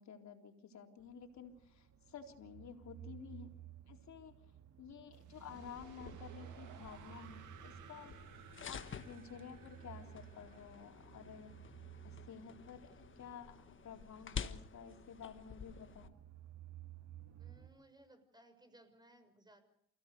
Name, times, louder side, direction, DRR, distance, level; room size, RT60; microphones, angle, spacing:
voice 1, 0.0-3.5 3.9-4.3 4.8-8.1 8.7-11.5 12.0-16.1, left 7 dB, 65° left, 3 dB, 3.9 m, -52 dB
sound 1, 1.0-17.7, right 10 dB, 60° right, 2.6 m, -56 dB
sound 2, 5.1-12.0, right 10 dB, 80° right, 2.0 m, -60 dB
sound 3, 5.5-16.1, left 6 dB, 40° left, 1.4 m, -50 dB
voice 2, 17.4-19.6, right 1 dB, 15° right, 10 dB, 6.3 m, -63 dB
28.5 x 17.0 x 6.8 m, 0.66 s
cardioid pair, 90°, 30 cm